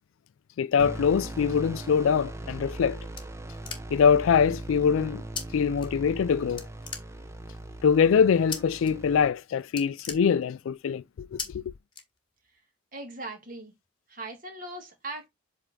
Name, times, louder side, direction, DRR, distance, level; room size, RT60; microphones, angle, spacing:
voice 1, 0.6-3.0 3.9-5.2 5.5-6.7 7.8-11.6, left 6 dB, 80° left, 0.3 m, -23 dB
sound 1, 0.8-9.3, right 1 dB, 15° right, 0.6 m, -40 dB
sound 2, 3.2-4.2 5.4-5.5 5.8-6.3 6.6-7.5 8.5-8.9 9.2-9.4 9.7-10.8 11.4-11.5 11.9-12.6, left 6 dB, 25° left, 1.4 m, -38 dB
voice 2, 12.9-13.7 14.1-15.3, right 2 dB, 40° right, 2.2 m, -39 dB
7.9 x 3.4 x 3.7 m
head